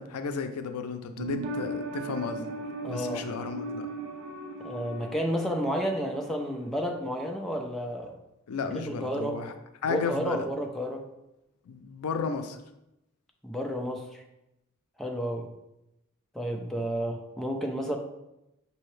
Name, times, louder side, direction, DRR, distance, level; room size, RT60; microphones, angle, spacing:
voice 1, 0.0-2.5 2.9-3.9 8.5-9.5 9.8-10.5 11.7-12.6, left 5 dB, 90° left, 8 dB, 0.4 m, -33 dB
sound 1, 1.2-6.7 6.9-7.0, right 2 dB, 80° right, 0.6 m, -38 dB
voice 2, 2.8-3.2 4.6-8.2 8.7-9.4 9.9-11.0 13.4-14.2 15.0-15.5 16.3-18.0, equal, ahead, 1 dB, 0.4 m, -31 dB
5.4 x 2.7 x 3.1 m, 0.90 s
head